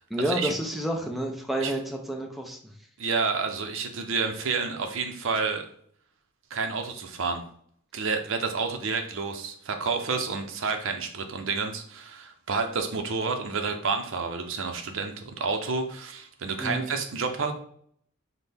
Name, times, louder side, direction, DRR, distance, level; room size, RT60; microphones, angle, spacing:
voice 1, 0.1-2.6 16.6-16.9, right 1 dB, ahead, 1 dB, 0.5 m, -29 dB
voice 2, 3.0-5.7 6.5-7.4 7.9-17.5, right 4 dB, 70° right, 6 dB, 0.6 m, -29 dB
5.9 x 2.1 x 3.4 m, 0.63 s
head